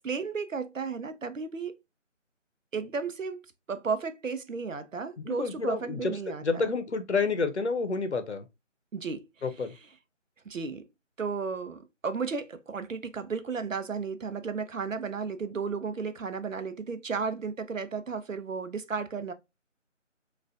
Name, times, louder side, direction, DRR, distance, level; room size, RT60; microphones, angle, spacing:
voice 1, 0.0-1.8 2.7-3.4 3.7-6.7 8.9-9.3 10.4-10.8 11.2-19.3, right 5 dB, 90° right, 0.7 m, -34 dB
voice 2, 5.2-6.1 6.4-8.5 9.4-9.7, left 4 dB, 65° left, 0.7 m, -29 dB
4.3 x 2.4 x 2.4 m
figure-of-eight pair, 160°, 38 cm